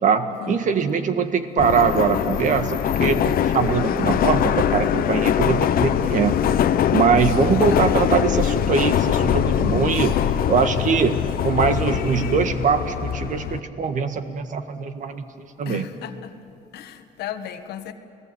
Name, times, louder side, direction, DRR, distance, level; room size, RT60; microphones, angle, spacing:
voice 1, 0.0-6.4 6.9-10.2 10.5-11.2 11.4-15.9, right 6 dB, 50° right, 8 dB, 1.7 m, -22 dB
Subway metro underground, 1.6-13.6, left 10 dB, 60° left, 0.9 m, -22 dB
voice 2, 3.6-4.2 7.7-8.1 15.6-16.4 16.7-17.9, left 10 dB, 75° left, 8 dB, 1.6 m, -35 dB
29.5 x 18.0 x 7.9 m, 2.6 s
cardioid pair, 110°, 17 cm